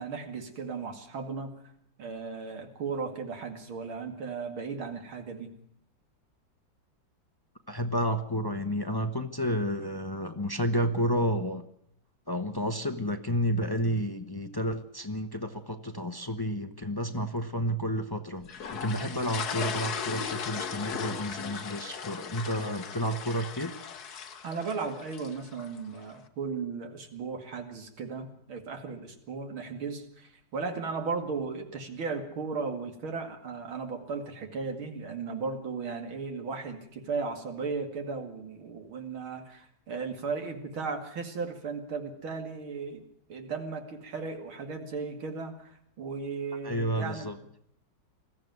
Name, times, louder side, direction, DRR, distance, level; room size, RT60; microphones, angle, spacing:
voice 1, 0.0-1.5 2.0-5.5 24.4-43.0 43.3-47.3, right 4 dB, 85° right, 5 dB, 3.1 m, -36 dB
voice 2, 7.7-11.6 12.3-23.7 46.6-47.4, equal, 30° left, 7 dB, 0.4 m, -31 dB
sound 1, 18.5-25.8, left 6 dB, 55° left, 1.6 m, -37 dB
20.5 x 14.5 x 9.4 m, 0.71 s
omnidirectional pair, 2.2 m